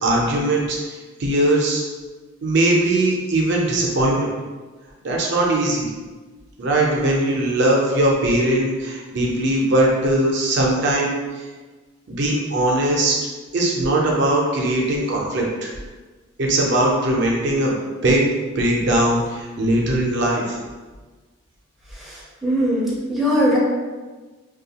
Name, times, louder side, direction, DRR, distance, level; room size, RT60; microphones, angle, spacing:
voice 1, 0.0-0.8 1.2-1.8 2.4-4.3 5.0-5.9 6.6-11.1 12.1-13.2 13.5-15.7 16.4-17.7 18.0-18.2 18.6-20.6, right 1 dB, 60° right, -2 dB, 0.5 m, -20 dB
voice 2, 21.9-23.6, equal, ahead, -7 dB, 0.4 m, -21 dB
2.6 x 2.3 x 2.8 m, 1.3 s
head